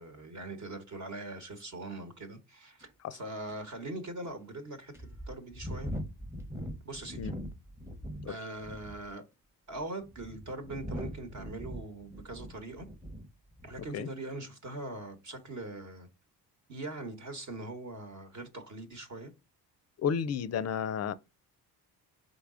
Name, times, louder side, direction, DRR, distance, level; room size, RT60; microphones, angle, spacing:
voice 1, 0.0-5.9 6.8-7.3 8.3-9.2 9.7-12.9 13.6-16.1 16.7-19.3, right 2 dB, 45° right, 1.1 m, -42 dB
sound 1, 2.8-2.9 3.5-3.6 4.2-4.3 4.9-8.3 8.6-9.1 9.8-13.3 13.6-13.9, equal, 5° right, 0.8 m, -41 dB
voice 2, 20.0-21.1, left 7 dB, 40° left, 0.4 m, -32 dB
4.0 x 3.4 x 3.6 m
cardioid pair, 90°, 40 cm